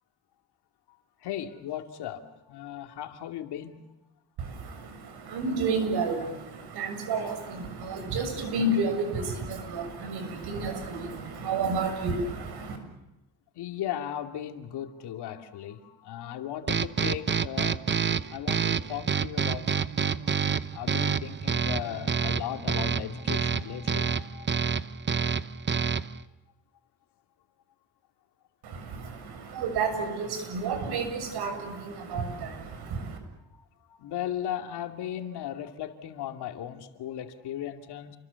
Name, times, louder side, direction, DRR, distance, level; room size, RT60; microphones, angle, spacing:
voice 1, 1.2-3.8 13.6-17.8 18.3-24.5 33.5-33.6 33.9-38.2, left 11 dB, 80° left, 6 dB, 2.7 m, -37 dB
voice 2, 4.4-12.8 28.6-33.2, right 3 dB, 75° right, 7 dB, 7.2 m, -31 dB
sound 1, 16.7-26.2, right 6 dB, 30° right, 0.9 m, -28 dB
29.5 x 23.5 x 7.1 m, 0.94 s
cardioid pair, 105°, 39 cm